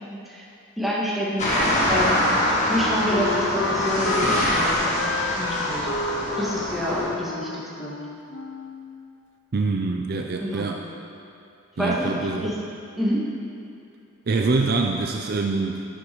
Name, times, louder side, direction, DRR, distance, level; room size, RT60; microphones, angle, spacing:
voice 1, 0.1-0.5 0.8-1.5 1.9-2.2 2.7-4.9 5.4-5.8 6.4-8.0 10.4-10.7 11.8-12.6 13.0-13.2, equal, ahead, -8 dB, 1.8 m, -27 dB
sound 1, 1.4-7.1, left 1 dB, 35° left, 1.7 m, -24 dB
Wind instrument woodwind instrument, 1.6-9.2, left 3 dB, 60° left, 0.5 m, -32 dB
voice 2, 9.5-10.9 11.8-12.5 14.3-15.8, right 3 dB, 45° right, 2 dB, 0.4 m, -25 dB
11.5 x 10.0 x 3.1 m, 2.6 s
head